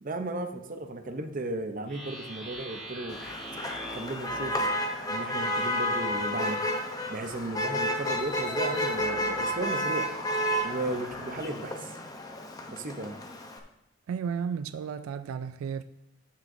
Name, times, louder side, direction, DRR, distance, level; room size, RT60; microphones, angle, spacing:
voice 1, 0.0-3.2 3.9-4.7 5.1-6.6 7.1-10.1 10.6-12.0 12.7-13.2, right 2 dB, 40° right, 0.6 m, -35 dB
sound 1, 1.9-11.3, equal, ahead, 2.3 m, -43 dB
Motor vehicle (road), 3.1-13.6, equal, 20° left, 0.7 m, -31 dB
voice 2, 14.1-15.8, right 6 dB, 85° right, 0.3 m, -33 dB
12.5 x 6.1 x 2.6 m
head